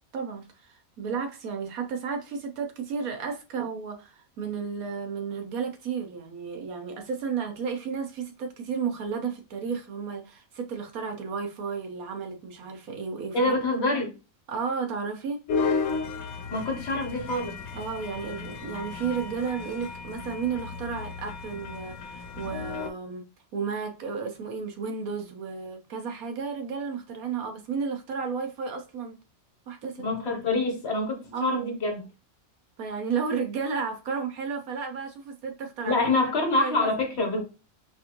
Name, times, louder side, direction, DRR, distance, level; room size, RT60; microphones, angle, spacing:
voice 1, 0.1-13.5 13.9-14.0 14.5-15.4 17.7-23.2 23.5-29.2 29.7-30.0 31.3-31.8 32.8-36.1 36.5-36.9, right 5 dB, 90° right, 1.3 m, -33 dB
voice 2, 13.3-14.1 16.5-17.6 30.0-32.1 35.8-37.4, left 2 dB, 50° left, 1.2 m, -26 dB
sound 1, 15.5-22.9, left 5 dB, 85° left, 1.1 m, -33 dB
4.7 x 2.6 x 2.9 m
omnidirectional pair, 1.5 m